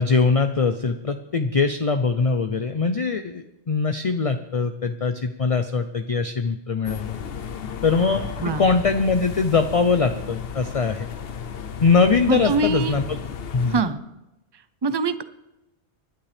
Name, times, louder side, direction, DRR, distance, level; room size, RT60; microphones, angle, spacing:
voice 1, 0.0-7.1 7.8-8.2 8.6-11.1 11.8-13.2 13.5-13.7, left 4 dB, 40° left, 8 dB, 0.6 m, -22 dB
sound 1, 6.8-13.8, left 7 dB, 60° left, 0.9 m, -34 dB
voice 2, 12.3-12.9 13.7-14.0 14.8-15.2, right 3 dB, 30° right, 13 dB, 0.6 m, -23 dB
24.5 x 11.5 x 3.4 m, 0.95 s
omnidirectional pair, 1.2 m